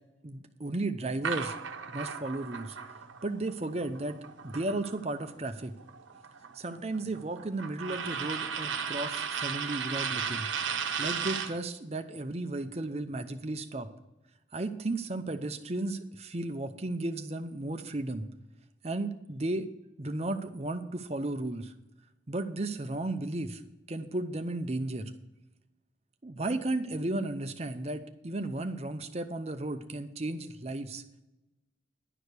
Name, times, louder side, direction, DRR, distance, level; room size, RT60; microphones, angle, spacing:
voice 1, 0.2-1.6 1.9-2.8 3.2-4.2 4.4-5.7 6.5-10.5 11.0-13.9 14.5-18.3 18.8-19.7 20.0-21.7 22.3-23.6 23.9-25.1 26.2-31.0, right 2 dB, 35° right, 8 dB, 0.6 m, -34 dB
sound 1, 1.2-5.3 5.6-11.6, right 6 dB, 90° right, 0.8 m, -35 dB
11.0 x 4.9 x 8.1 m, 0.95 s
head